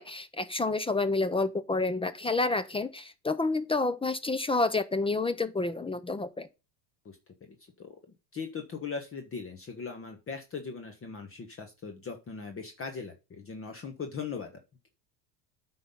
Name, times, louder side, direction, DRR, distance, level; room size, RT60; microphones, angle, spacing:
voice 1, 0.0-6.5, left 3 dB, 10° left, 0.5 m, -29 dB
voice 2, 8.3-14.5, left 5 dB, 30° left, 1.2 m, -39 dB
9.2 x 4.0 x 5.6 m
supercardioid pair, 100°, 46 cm